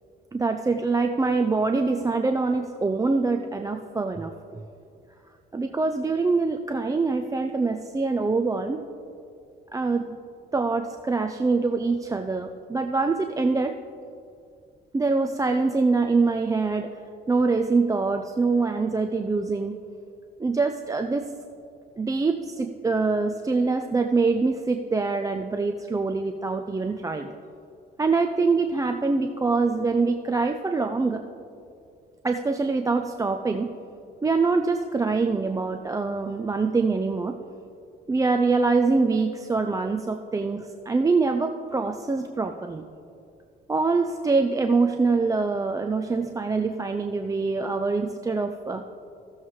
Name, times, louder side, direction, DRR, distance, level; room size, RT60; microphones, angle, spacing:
voice 1, 0.3-4.6 5.5-8.8 9.7-10.2 10.5-13.8 14.9-16.9 17.3-19.8 20.4-21.3 22.0-27.3 28.0-31.2 32.2-33.7 34.2-37.4 38.1-42.8 43.7-48.8, right 3 dB, 15° right, 5 dB, 0.4 m, -24 dB
15.5 x 7.2 x 3.2 m, 2.5 s
cardioid pair, 90°, 20 cm